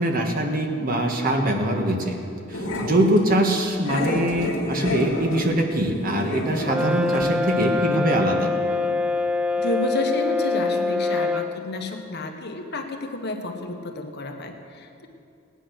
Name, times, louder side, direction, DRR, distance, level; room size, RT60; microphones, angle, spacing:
voice 1, 0.0-2.2 2.5-8.5, right 1 dB, 45° right, 2 dB, 1.7 m, -23 dB
Growling, 2.5-3.3 3.8-6.9 7.1-7.3 7.6-7.7, left 1 dB, 85° left, 2.0 m, -30 dB
Brass instrument, 6.7-11.6, left 3 dB, 5° right, 0.5 m, -24 dB
voice 2, 9.6-15.1, left 2 dB, 55° left, 4 dB, 1.3 m, -30 dB
17.5 x 10.0 x 6.4 m, 2.4 s
head